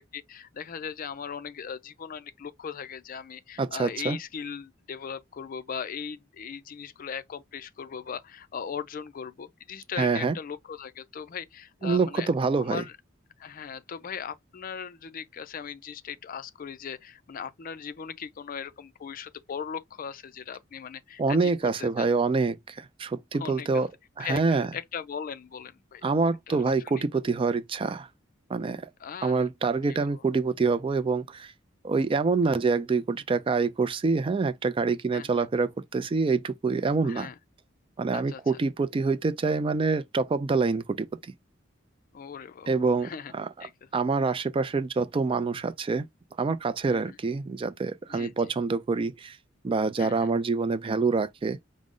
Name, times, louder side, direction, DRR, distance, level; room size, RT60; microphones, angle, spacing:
voice 1, 0.1-12.3 12.7-12.9 13.4-22.1 23.4-23.8 24.2-26.0 26.5-27.0 29.0-29.4 29.9-30.1 35.1-35.5 37.0-37.3 38.1-38.4 42.1-42.7 43.0-43.3 43.6-43.9 46.9-47.2 48.1-48.3 50.0-50.3, left 7 dB, 45° left, 0.4 m, -39 dB
voice 2, 3.6-4.2 10.0-10.4 11.8-12.8 21.2-23.9 24.2-24.7 26.0-28.1 28.5-28.9 29.2-31.5 31.8-37.3 38.0-41.1 42.7-43.5 43.9-46.1 46.4-49.4 49.6-51.6, right 4 dB, 25° right, 0.3 m, -26 dB
4.9 x 2.0 x 3.6 m
head